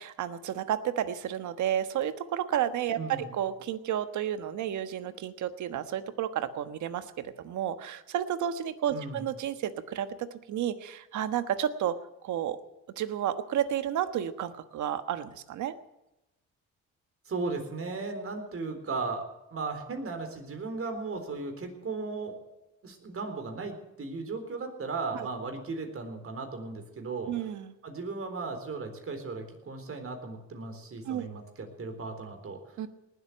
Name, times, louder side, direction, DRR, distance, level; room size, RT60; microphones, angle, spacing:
voice 1, 0.0-12.0 12.2-12.6 13.0-15.7 25.1-25.3 27.3-27.7 31.0-31.3 32.8-32.9, right 10 dB, 75° right, 11 dB, 1.3 m, -31 dB
voice 2, 3.0-3.3 8.9-9.2 17.3-22.4 22.8-27.3 27.8-32.6, right 3 dB, 45° right, 6 dB, 3.9 m, -36 dB
19.0 x 8.1 x 9.1 m, 0.95 s
cardioid pair, 90°, 30 cm